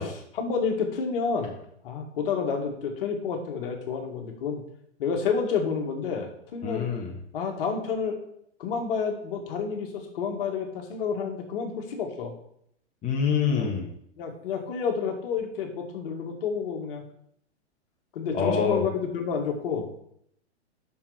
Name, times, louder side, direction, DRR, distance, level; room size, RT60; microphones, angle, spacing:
voice 1, 0.0-1.6 1.8-4.6 5.0-6.9 7.3-8.2 8.6-12.3 13.5-13.7 14.2-17.0 18.1-19.9, left 6 dB, 50° left, 3 dB, 2.0 m, -29 dB
voice 2, 6.6-7.1 13.0-13.9 18.3-18.8, left 6 dB, 20° left, -1 dB, 1.3 m, -26 dB
7.2 x 6.2 x 5.0 m, 0.70 s
figure-of-eight pair, 115°, 35 cm